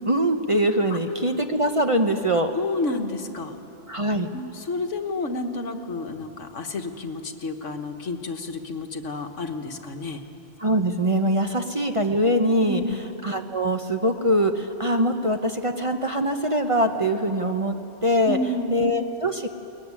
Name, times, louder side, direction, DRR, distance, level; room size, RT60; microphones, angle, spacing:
voice 1, 0.1-2.5 3.9-4.3 10.6-12.8 13.2-17.8 18.0-18.4 18.7-19.5, equal, 30° right, 5 dB, 1.0 m, -23 dB
voice 2, 2.5-3.6 4.3-10.2 12.7-13.0 18.3-18.7, left 2 dB, 70° left, 6 dB, 1.7 m, -30 dB
22.0 x 20.0 x 9.7 m, 2.9 s
omnidirectional pair, 1.3 m